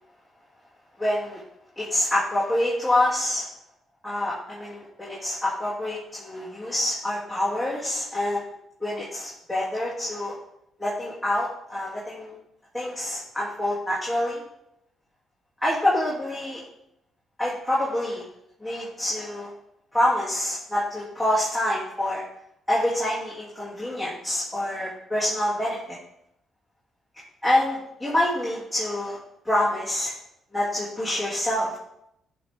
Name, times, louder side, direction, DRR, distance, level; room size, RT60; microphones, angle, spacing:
voice 1, 1.0-1.4 1.8-3.5 4.0-8.5 8.8-10.3 10.8-12.3 12.7-14.4 15.6-16.6 17.4-18.2 18.6-19.5 19.9-22.2 22.7-26.0 27.4-29.2 29.4-30.1 30.5-31.8, left 1 dB, ahead, -8 dB, 3.2 m, -26 dB
13.5 x 5.6 x 3.8 m, 0.79 s
cardioid pair, 90°, 0 cm